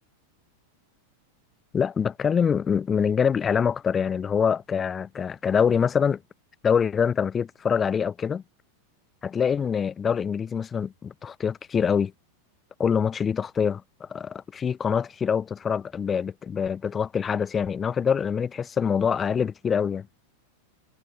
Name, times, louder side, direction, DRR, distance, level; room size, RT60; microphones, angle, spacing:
voice 1, 1.7-6.2 6.6-8.4 9.2-12.1 12.8-20.1, left 7 dB, 20° left, 7.5 m, -25 dB
figure-of-eight pair, 90°, 0 cm